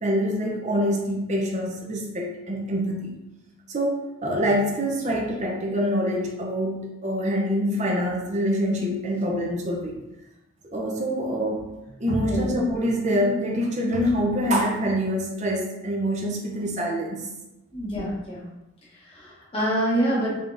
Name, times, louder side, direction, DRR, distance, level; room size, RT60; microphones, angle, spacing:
voice 1, 0.0-3.1 3.7-10.0 10.7-11.6 12.0-17.3, equal, 30° right, -1 dB, 0.6 m, -25 dB
voice 2, 17.7-18.5 19.1-20.4, equal, 25° left, -6 dB, 0.8 m, -26 dB
3.6 x 3.4 x 2.5 m, 0.97 s
head